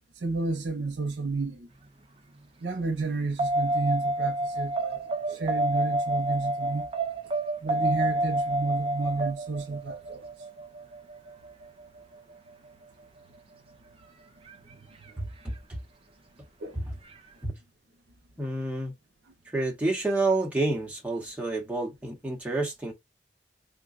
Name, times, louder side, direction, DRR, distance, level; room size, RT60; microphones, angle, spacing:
voice 1, 0.2-1.7 2.6-5.0 5.3-6.9 7.6-10.2 16.6-16.8, right 4 dB, 75° right, 0.7 m, -31 dB
sound 1, 3.4-11.8 14.5-14.6, right 1 dB, 30° right, 0.4 m, -29 dB
voice 2, 15.2-15.5 16.7-16.8 17.4-17.5 18.4-18.9 19.5-22.9, right 2 dB, 10° right, 0.9 m, -29 dB
3.6 x 2.2 x 2.5 m
head